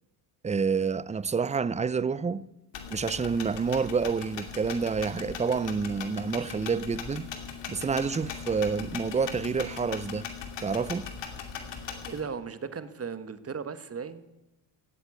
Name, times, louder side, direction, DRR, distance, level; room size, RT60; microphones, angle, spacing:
voice 1, 0.4-2.4 2.9-7.3 7.7-10.3 10.6-11.1, right 5 dB, 15° right, 0.5 m, -28 dB
sound 1, 2.7-12.2, left 7 dB, 65° left, 2.6 m, -39 dB
voice 2, 12.0-14.2, right 6 dB, 30° right, 1.4 m, -36 dB
17.0 x 8.1 x 9.6 m
supercardioid pair, 80°, 46 cm